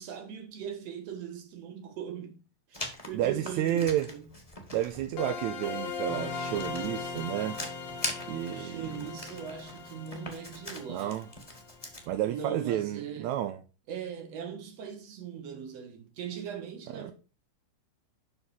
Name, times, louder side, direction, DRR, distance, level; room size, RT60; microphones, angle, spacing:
voice 1, 0.0-2.4 2.7-4.3 8.5-11.2 12.3-13.3 13.9-17.1, right 7 dB, 60° right, 2.7 m, -40 dB
Writing, 2.7-12.1, left 2 dB, 15° left, 1.7 m, -43 dB
voice 2, 3.1-4.1 4.7-7.6 8.3-9.1 10.9-11.3 12.1-13.6 16.9-17.1, right 12 dB, 80° right, 2.0 m, -31 dB
sound 1, 5.2-11.8, left 5 dB, 65° left, 2.7 m, -39 dB
11.5 x 4.2 x 5.5 m
omnidirectional pair, 3.4 m